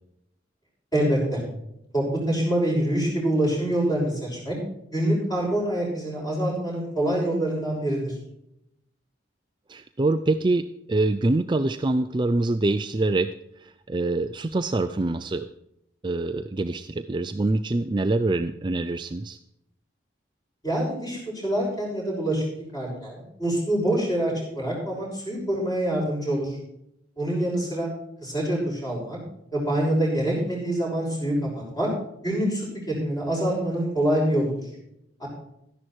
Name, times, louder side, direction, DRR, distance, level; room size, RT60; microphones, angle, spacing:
voice 1, 0.9-1.4 1.9-4.6 4.9-8.2 20.6-22.4 22.7-26.6 27.2-27.9 28.2-29.2 29.5-31.9 32.2-34.7 35.2-35.3, right 1 dB, 20° left, -3 dB, 6.2 m, -25 dB
voice 2, 9.7-13.3 13.6-15.5 16.0-19.4, right 2 dB, 25° right, 9 dB, 0.4 m, -25 dB
13.0 x 11.0 x 4.5 m, 0.80 s
head